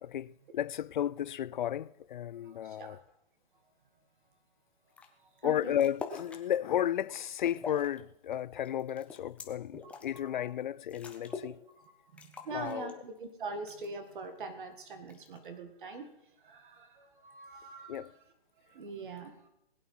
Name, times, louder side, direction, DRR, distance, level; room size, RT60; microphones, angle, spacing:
voice 1, 0.0-3.0 5.4-11.6 12.5-13.0 17.9-18.1, left 10 dB, 50° left, 0.5 m, -33 dB
voice 2, 2.4-3.0 5.2-5.8 9.8-9.9 10.2-10.5 11.3-11.4 12.1-16.1 16.4-18.2 18.6-19.5, right 3 dB, 55° right, 1.9 m, -44 dB
sound 1, 4.9-5.1 5.4-6.4 6.9-8.0 8.3-10.2 10.6-10.7 10.9-11.6 11.8-11.9 12.2-13.2 13.7-14.2 15.1-15.6, left 4 dB, 5° left, 0.6 m, -45 dB
19.5 x 8.7 x 5.6 m
hypercardioid pair, 150°, 30 cm